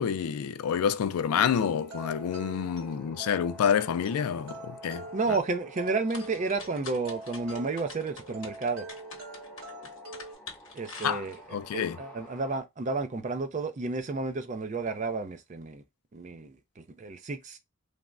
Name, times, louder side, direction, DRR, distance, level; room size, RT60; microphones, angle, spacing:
voice 1, 0.0-5.0 11.0-11.3 11.5-12.0, left 7 dB, 90° left, 0.3 m, -28 dB
sound 1, 1.1-12.6, equal, 10° left, 0.8 m, -52 dB
sound 2, 1.6-10.3, right 2 dB, 70° right, 1.7 m, -44 dB
voice 2, 5.1-8.9 10.7-11.4 11.7-15.8 16.1-17.6, right 3 dB, 35° right, 0.4 m, -31 dB
sound 3, 5.8-11.6, left 4 dB, 60° left, 0.9 m, -46 dB
3.3 x 2.0 x 2.4 m
head